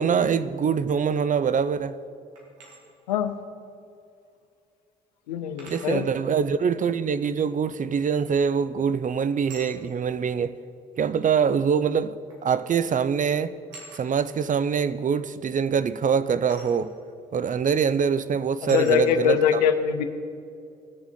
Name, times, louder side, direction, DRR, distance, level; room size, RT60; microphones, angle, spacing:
voice 1, 0.0-2.0 5.7-10.6 11.0-12.2 12.4-13.5 13.9-16.9 17.3-19.6, right 6 dB, 40° right, 0.5 m, -24 dB
sound 1, 2.4-2.8 4.3-4.4 5.6-6.0 8.3-8.6 9.5-9.8 10.9-11.0 12.3-12.5 12.8-13.1 13.7-14.1 16.5-16.8 17.6-17.7 18.7-19.0, right 2 dB, 85° right, 1.9 m, -45 dB
voice 2, 5.3-6.1 18.6-20.0, left 8 dB, 90° left, 0.6 m, -23 dB
18.0 x 6.9 x 4.3 m
hypercardioid pair, 50°, 21 cm